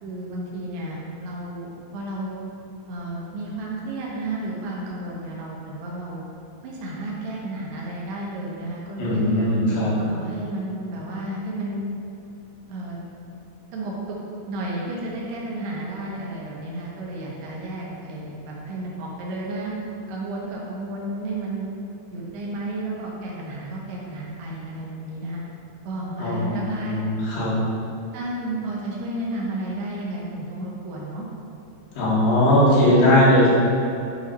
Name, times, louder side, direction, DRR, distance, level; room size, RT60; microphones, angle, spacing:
voice 1, 0.0-2.4 2.9-6.2 6.6-9.5 10.0-11.9 12.7-13.0 13.7-14.2 14.5-19.8 20.1-21.7 22.1-25.4 25.8-26.9 27.3-27.6 28.1-31.2, right 1 dB, 80° right, -4 dB, 3.1 m, -32 dB
voice 2, 9.0-9.9 26.2-27.6 32.0-33.5, left 1 dB, 65° left, -8 dB, 3.4 m, -19 dB
8.3 x 4.7 x 4.1 m, 2.9 s
omnidirectional pair, 4.7 m